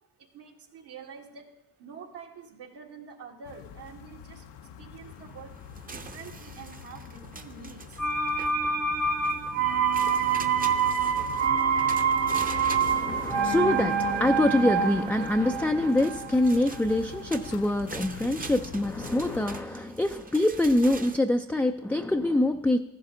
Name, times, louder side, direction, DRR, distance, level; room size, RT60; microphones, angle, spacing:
voice 1, 0.2-1.5 1.8-4.5 4.8-8.0, right 6 dB, 75° right, 0 dB, 2.1 m, -46 dB
sound 1, 3.4-19.6, left 8 dB, 75° left, 0.8 m, -43 dB
sound 2, 5.0-21.2, right 4 dB, 20° right, 0.8 m, -44 dB
sound 3, 8.0-17.7 18.0-18.1, right 6 dB, 40° right, 1.1 m, -27 dB
voice 2, 12.4-22.8, left 1 dB, 5° left, 4 dB, 0.4 m, -25 dB
14.0 x 11.5 x 3.9 m, 0.90 s
cardioid pair, 85°, 41 cm